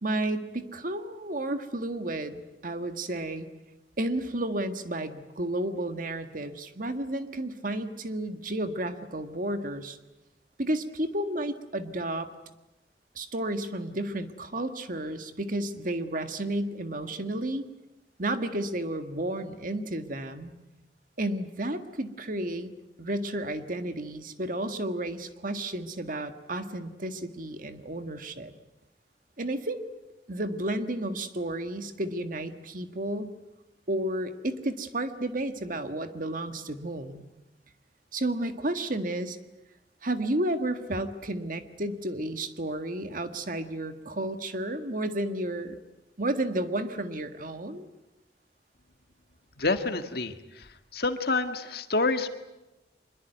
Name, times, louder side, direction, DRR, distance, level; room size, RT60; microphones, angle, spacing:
voice 1, 0.0-3.5 4.0-10.0 10.6-12.3 13.1-17.6 18.2-20.5 21.2-22.7 23.0-28.5 29.4-29.8 30.3-33.3 33.9-37.2 38.1-39.4 40.0-45.8 46.2-47.9, right 1 dB, 50° right, 8 dB, 1.8 m, -32 dB
voice 2, 49.6-50.7 50.9-52.3, left 3 dB, 60° left, 8 dB, 1.9 m, -28 dB
25.0 x 22.0 x 9.3 m, 0.99 s
head